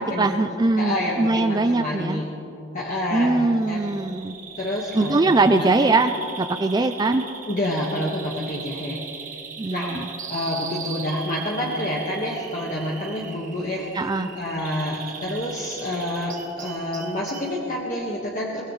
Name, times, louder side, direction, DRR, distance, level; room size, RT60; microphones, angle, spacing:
voice 1, 0.0-2.2 3.1-4.3 4.9-6.1 6.4-7.2 9.6-10.1 13.9-14.3, right 2 dB, 20° right, 8 dB, 0.4 m, -21 dB
voice 2, 0.8-2.3 2.7-3.8 4.6-5.6 7.5-9.0 9.7-13.9 14.3-18.6, left 1 dB, 45° left, -4 dB, 1.6 m, -28 dB
Bird vocalization bird call bird song, 3.6-17.6, right 6 dB, 45° right, 1.5 m, -39 dB
23.0 x 19.0 x 3.2 m, 3.0 s
head